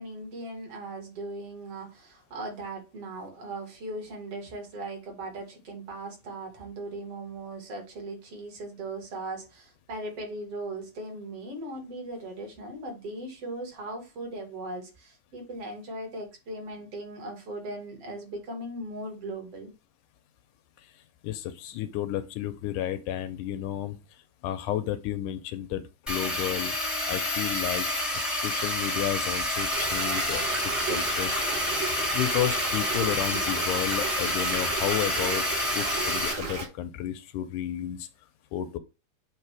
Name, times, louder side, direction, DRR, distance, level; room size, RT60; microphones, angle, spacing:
voice 1, 0.0-19.7, right 2 dB, 50° right, 2.8 m, -38 dB
voice 2, 21.2-24.0 24.4-25.8 26.1-26.8 27.1-27.9 28.3-31.4 31.8-35.5 35.8-38.1 38.5-38.8, left 11 dB, 80° left, 1.9 m, -32 dB
sound 1, 26.1-36.3, left 1 dB, ahead, 0.6 m, -28 dB
sound 2, 29.7-36.7, right 4 dB, 70° right, 4.3 m, -34 dB
9.0 x 3.1 x 4.6 m
omnidirectional pair, 3.9 m